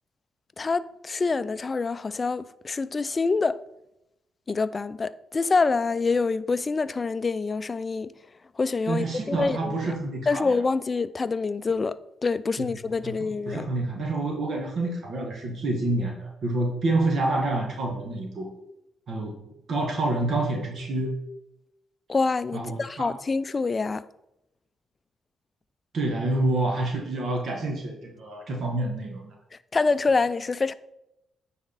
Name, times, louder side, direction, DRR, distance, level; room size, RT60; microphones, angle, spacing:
voice 1, 0.6-3.6 4.5-8.1 8.6-9.9 10.3-13.7 22.1-24.0 29.7-30.7, left 4 dB, 35° left, 0.4 m, -26 dB
voice 2, 8.9-10.6 12.6-12.7 13.0-13.1 13.5-18.5 19.1-19.3 19.7-21.1 22.5-23.1 25.9-29.3, right 2 dB, 60° right, 1.5 m, -28 dB
9.5 x 4.2 x 4.1 m
supercardioid pair, 60°, 0 cm